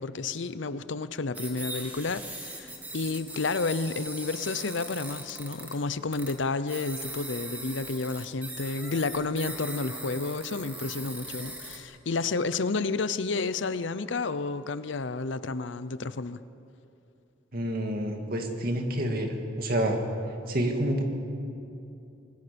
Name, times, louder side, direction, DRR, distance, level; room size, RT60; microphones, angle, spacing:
voice 1, 0.0-16.4, left 3 dB, 65° left, 14 dB, 0.7 m, -31 dB
sound 1, 1.3-5.8 6.1-6.4 6.7-11.8, right 1 dB, 10° right, 2.7 m, -40 dB
voice 2, 17.5-20.0 20.5-21.0, right 1 dB, 50° right, 3 dB, 2.4 m, -28 dB
25.0 x 20.5 x 6.9 m, 2.8 s
head